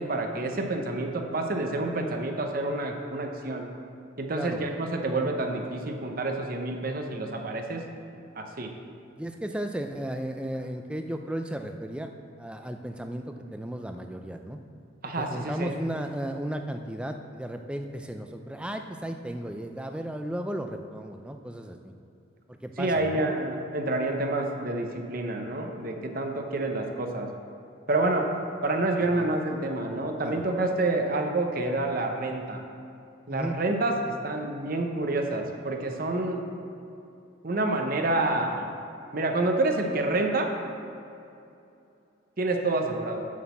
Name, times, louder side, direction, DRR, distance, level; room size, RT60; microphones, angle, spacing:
voice 1, 0.0-3.7 4.2-7.8 8.3-8.7 15.0-15.7 22.8-27.3 27.9-28.3 28.6-32.6 33.3-36.4 37.4-38.7 39.1-40.5 42.4-43.3, right 2 dB, 45° right, 3 dB, 0.7 m, -28 dB
voice 2, 4.3-4.7 9.1-12.1 12.4-14.6 15.2-21.9 22.5-23.3 29.2-29.3 30.2-30.4 33.3-33.6, right 1 dB, 5° right, 5 dB, 0.4 m, -35 dB
7.3 x 6.2 x 7.0 m, 2.7 s
head